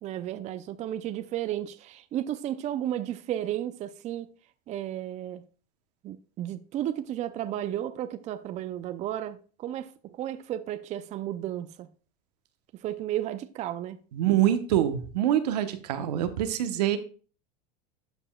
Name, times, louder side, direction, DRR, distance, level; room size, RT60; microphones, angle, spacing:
voice 1, 0.0-4.3 4.7-5.4 6.0-11.9 12.7-14.0, right 12 dB, 35° right, 0.5 m, -33 dB
voice 2, 14.1-17.0, right 11 dB, 80° right, 1.0 m, -25 dB
12.0 x 5.4 x 2.3 m
supercardioid pair, 115°, 20 cm